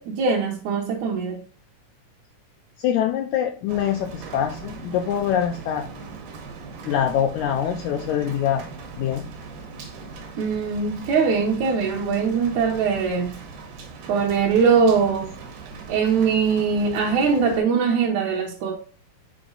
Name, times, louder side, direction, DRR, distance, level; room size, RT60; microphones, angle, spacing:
voice 1, 0.0-1.4 10.4-13.4 14.1-15.3 15.9-18.7, right 5 dB, 70° right, 2.0 m, -21 dB
voice 2, 2.8-5.9 6.9-8.7 9.0-9.3, left 9 dB, 80° left, 1.8 m, -24 dB
Rain, 3.7-17.6, right 4 dB, 85° right, 2.7 m, -40 dB
6.1 x 4.4 x 3.9 m
omnidirectional pair, 3.9 m